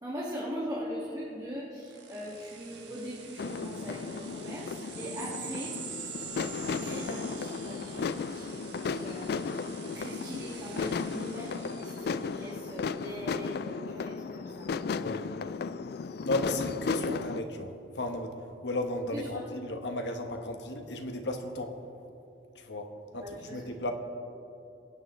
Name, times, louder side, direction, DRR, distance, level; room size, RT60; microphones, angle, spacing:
voice 1, 0.0-5.8 6.3-9.7 9.9-14.7 19.1-19.4 23.1-23.7, equal, 20° right, -8 dB, 2.0 m, -41 dB
sound 1, 1.8-12.9, right 7 dB, 80° right, 1.4 m, -46 dB
sound 2, 3.4-17.4, left 5 dB, 65° left, 0.4 m, -35 dB
voice 2, 15.0-15.3 16.2-18.3 18.6-21.7 22.6-23.2 23.5-23.9, left 1 dB, 80° left, 5 dB, 1.2 m, -34 dB
25.5 x 9.1 x 3.2 m, 2.8 s
head